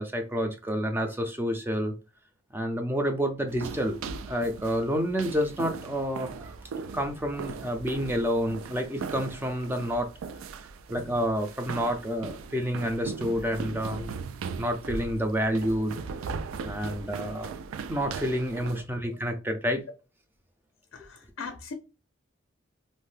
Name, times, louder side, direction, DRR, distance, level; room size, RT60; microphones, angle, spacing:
voice 1, 0.0-1.9 2.5-4.0 4.2-6.6 6.9-10.1 10.9-14.1 14.6-16.0 16.6-17.5 17.9-19.8, equal, 10° right, 0.4 m, -29 dB
sound 1, 3.5-18.8, right 5 dB, 85° right, 0.3 m, -39 dB
voice 2, 20.9-21.7, left 5 dB, 75° left, 0.4 m, -39 dB
2.6 x 2.1 x 3.2 m
head